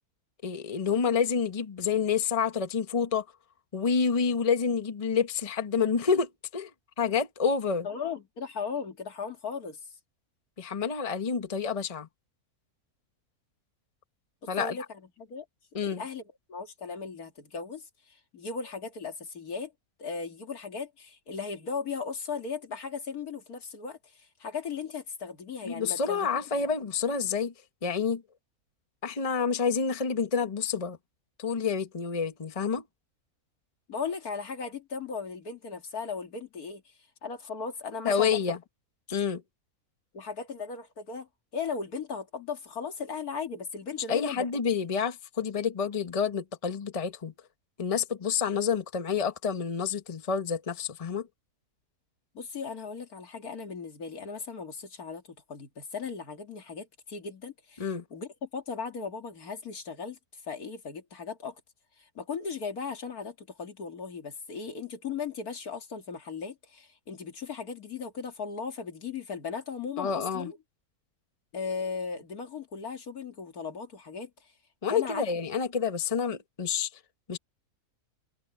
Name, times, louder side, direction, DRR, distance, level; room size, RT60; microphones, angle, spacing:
voice 1, 0.4-3.2 3.7-6.7 7.0-7.9 10.6-12.1 14.5-14.8 15.7-16.0 25.6-27.5 27.8-28.2 29.0-31.0 31.4-32.8 38.0-38.6 39.1-39.4 44.1-47.3 47.8-51.3 57.8-58.0 70.0-70.5 74.8-76.9 77.3-77.4, left 6 dB, 25° left, 1.1 m, -28 dB
voice 2, 7.8-9.8 14.4-14.8 15.2-15.5 15.8-16.2 16.5-19.7 20.0-24.0 24.4-26.3 26.6-26.7 33.9-36.8 37.2-38.4 40.1-44.5 52.3-55.2 55.5-60.2 60.5-61.6 62.0-70.6 71.5-74.3 74.9-75.2, left 5 dB, 75° left, 2.6 m, -37 dB
omnidirectional pair, 1.6 m